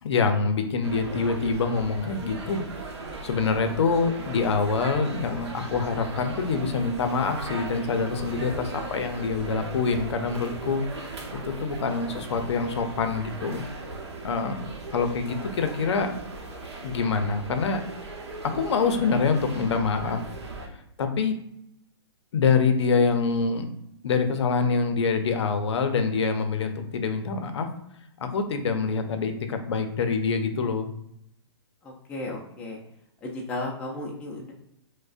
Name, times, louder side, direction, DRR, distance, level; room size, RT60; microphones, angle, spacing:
voice 1, 0.0-2.6 3.2-10.8 11.4-13.6 14.2-16.1 16.8-17.8 18.4-20.2 20.7-21.4 22.3-23.6 24.0-27.7 28.2-30.9, left 5 dB, 75° left, 7 dB, 0.5 m, -25 dB
sound 1, 0.8-20.7, right 3 dB, 75° right, 0.7 m, -38 dB
voice 2, 31.8-32.8 33.2-34.5, left 2 dB, 10° left, -2 dB, 0.3 m, -34 dB
4.9 x 2.1 x 2.4 m, 0.77 s
hypercardioid pair, 150°, 14 cm